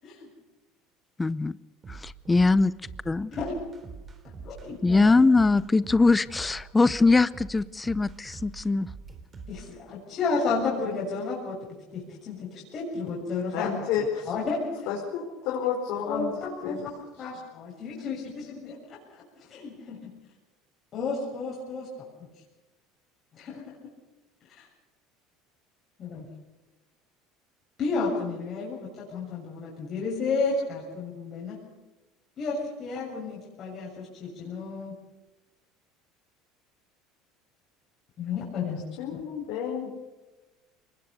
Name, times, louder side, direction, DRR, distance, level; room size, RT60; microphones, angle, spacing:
voice 1, 1.2-1.6 1.9-2.7 3.1-3.3 4.8-8.9, left 3 dB, 15° left, 18 dB, 0.6 m, -22 dB
sound 1, 1.8-9.7, right 4 dB, 30° right, 3.4 m, -44 dB
voice 2, 4.4-5.1 9.5-11.6 11.9-13.7 14.3-14.9 16.1-16.9 17.2-20.0 20.9-21.9 23.3-23.7 24.5-24.7 26.0-26.3 27.8-31.6 32.4-35.0 38.2-38.8 39.1-39.2, left 4 dB, 45° left, -4 dB, 7.0 m, -32 dB
voice 3, 13.5-14.3 14.9-16.3 16.6-16.8 39.0-39.9, left 8 dB, 70° left, -1 dB, 5.1 m, -30 dB
23.5 x 20.5 x 6.8 m, 1.1 s
supercardioid pair, 100°, 0 cm